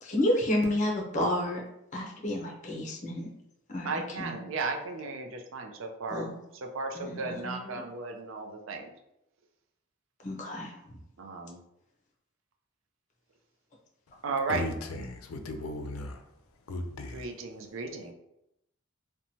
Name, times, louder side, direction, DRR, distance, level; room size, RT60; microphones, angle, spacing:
voice 1, 0.0-1.6 1.9-3.3 3.7-4.4 6.1-6.3 7.0-7.8 10.2-11.0, left 1 dB, 35° left, -1 dB, 0.6 m, -31 dB
voice 2, 3.9-6.2 6.5-8.9 11.2-11.6 14.2-14.6 17.1-18.1, right 4 dB, 65° right, 3 dB, 0.4 m, -35 dB
voice 3, 14.5-16.2 16.7-17.3, left 1 dB, 85° left, 5 dB, 0.4 m, -36 dB
3.0 x 2.1 x 2.7 m, 0.82 s
head